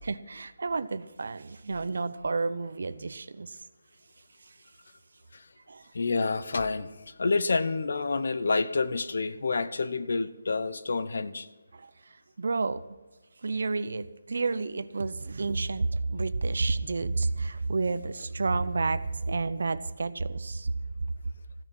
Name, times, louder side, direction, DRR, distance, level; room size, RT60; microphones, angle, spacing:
voice 1, 0.0-3.6 4.4-4.6 5.7-5.9 11.7-12.9 13.4-20.7, right 3 dB, 60° right, 14 dB, 0.7 m, -30 dB
voice 2, 5.9-11.5, left 3 dB, 55° left, 14 dB, 0.9 m, -28 dB
15.5 x 10.5 x 6.2 m, 1.2 s
hypercardioid pair, 180°, 0 cm